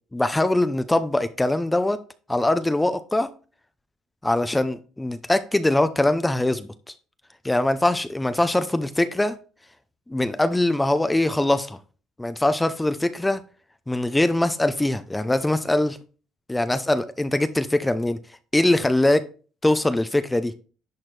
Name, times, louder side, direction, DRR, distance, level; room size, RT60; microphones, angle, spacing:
voice 1, 0.1-2.0 2.3-3.3 4.2-6.9 7.4-9.4 10.1-11.8 12.2-13.4 13.9-16.0 16.5-18.2 18.5-19.2 19.6-20.6, left 1 dB, 10° left, 0.6 m, -22 dB
10.5 x 4.3 x 3.3 m
cardioid pair, 100°, 0 cm